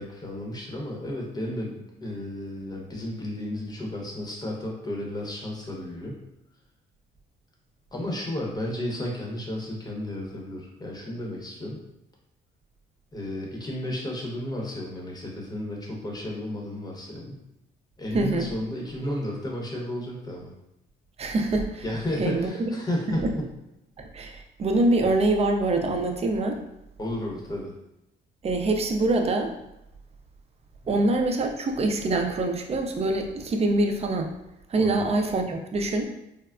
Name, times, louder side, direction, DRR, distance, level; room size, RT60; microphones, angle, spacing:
voice 1, 0.0-6.2 7.9-11.8 13.1-17.4 18.0-20.5 21.8-23.5 27.0-27.7 30.8-31.0 34.8-35.0, left 1 dB, 20° left, -1 dB, 0.8 m, -33 dB
voice 2, 18.1-18.5 21.2-21.8 22.2-22.7 23.1-23.3 24.0-26.6 28.4-29.5 30.9-34.3 34.7-36.1, right 2 dB, 30° right, 3 dB, 0.4 m, -25 dB
3.4 x 2.0 x 2.4 m, 0.87 s
cardioid pair, 90°, 20 cm